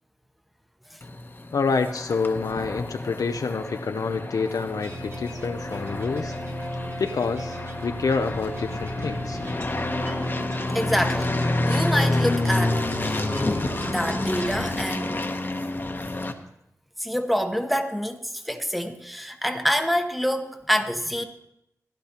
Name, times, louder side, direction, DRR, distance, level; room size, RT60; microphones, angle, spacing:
sound 1, 1.0-16.3, left 2 dB, 35° left, 0.9 m, -29 dB
voice 1, 1.5-6.3 7.0-7.6 7.8-9.4, left 4 dB, 70° left, 0.5 m, -27 dB
sound 2, 4.8-15.5, right 1 dB, 40° right, 1.2 m, -36 dB
voice 2, 10.7-11.3 11.7-13.3 13.8-15.2 17.0-21.2, equal, ahead, 0.9 m, -26 dB
16.0 x 11.5 x 2.9 m
wide cardioid pair, 85°, 6 cm